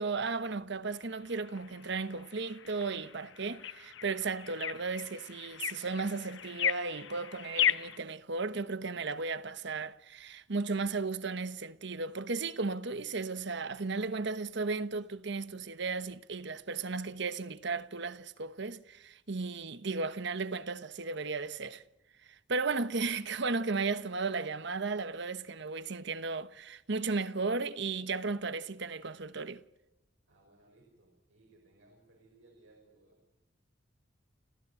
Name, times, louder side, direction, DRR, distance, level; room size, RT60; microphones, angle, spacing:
voice 1, 0.0-21.8 22.5-29.6, right 4 dB, 65° right, 1.1 m, -35 dB
sound 1, 0.9-8.0, left 9 dB, 75° left, 0.9 m, -36 dB
voice 2, 30.3-33.4, right 2 dB, 85° right, 5.6 m, -63 dB
29.5 x 14.5 x 9.7 m
head